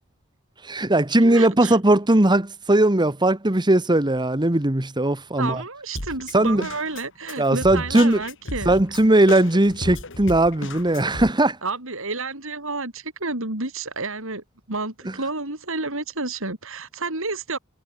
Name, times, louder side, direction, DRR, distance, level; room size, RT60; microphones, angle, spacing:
voice 1, 0.6-5.6 6.3-6.6 7.4-8.2 8.6-11.6, right 1 dB, 20° right, 1.4 m, -19 dB
voice 2, 1.2-1.8 5.4-8.7 11.6-17.6, right 3 dB, 65° right, 7.6 m, -30 dB
Drum kit, 6.0-11.3, left 2 dB, 60° left, 3.9 m, -34 dB
head